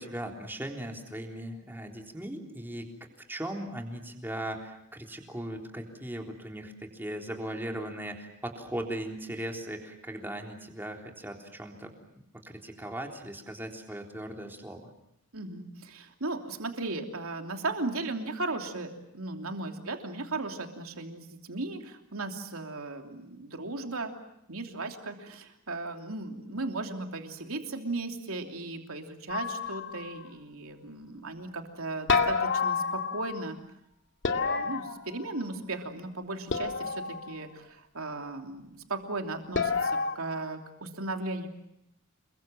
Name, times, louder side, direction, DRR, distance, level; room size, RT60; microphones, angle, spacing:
voice 1, 0.0-2.9 3.3-11.9 12.4-14.9, right 1 dB, 10° right, 2 dB, 3.6 m, -38 dB
voice 2, 15.3-24.1 24.5-33.6 34.3-41.5, right 2 dB, 75° right, 4 dB, 3.1 m, -36 dB
sound 1, 29.3-30.2 32.1-33.5 34.2-35.5 36.5-37.3 39.5-40.2, left 5 dB, 55° left, 2.2 m, -29 dB
28.5 x 23.0 x 7.6 m, 0.80 s
head